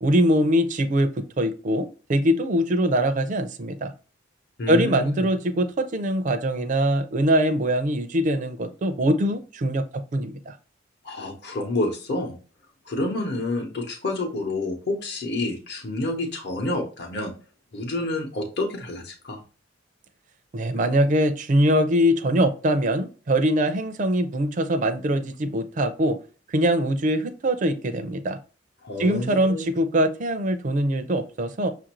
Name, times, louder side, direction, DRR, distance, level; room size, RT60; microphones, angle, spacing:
voice 1, 0.0-3.9 4.7-10.6 20.5-26.2 26.5-28.4 29.0-31.7, equal, 40° right, 8 dB, 0.4 m, -23 dB
voice 2, 4.6-5.2 11.0-12.4 12.8-17.3 17.7-19.4 28.8-29.7, left 2 dB, 60° left, 1 dB, 0.8 m, -29 dB
5.9 x 2.5 x 2.9 m, 0.36 s
head